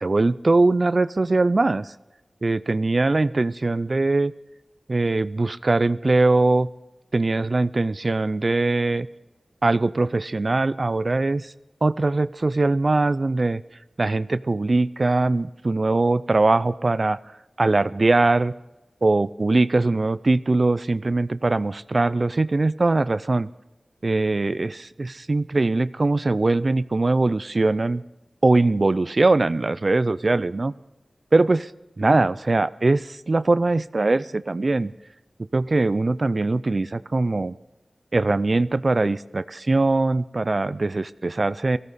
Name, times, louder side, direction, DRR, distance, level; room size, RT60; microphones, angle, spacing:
voice 1, 0.0-1.9 2.4-4.3 4.9-6.7 7.1-9.1 9.6-11.5 11.8-13.6 14.0-17.2 17.6-18.5 19.0-23.5 24.0-28.0 28.4-30.7 31.3-31.7 32.0-34.9 35.5-37.6 38.1-41.8, right 2 dB, 50° right, 16 dB, 0.4 m, -21 dB
18.5 x 16.0 x 4.1 m, 1.0 s
wide cardioid pair, 60°, 0 cm